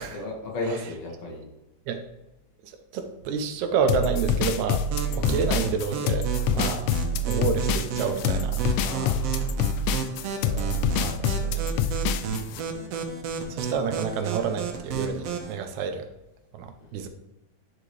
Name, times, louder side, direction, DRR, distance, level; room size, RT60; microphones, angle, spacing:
voice 1, 0.1-1.4 6.5-6.8 8.8-10.0 11.6-12.0 12.5-12.9 16.8-17.1, left 2 dB, 55° left, -2 dB, 2.5 m, -36 dB
voice 2, 2.6-4.9 5.1-6.9 7.2-8.6 10.4-11.7 13.5-16.1 16.5-17.1, right 6 dB, 80° right, 7 dB, 2.1 m, -29 dB
sound 1, 3.9-12.6, left 4 dB, 80° left, 1.8 m, -26 dB
sound 2, 4.9-15.5, right 5 dB, 65° right, 1.9 m, -32 dB
10.5 x 5.0 x 3.2 m, 0.94 s
omnidirectional pair, 3.3 m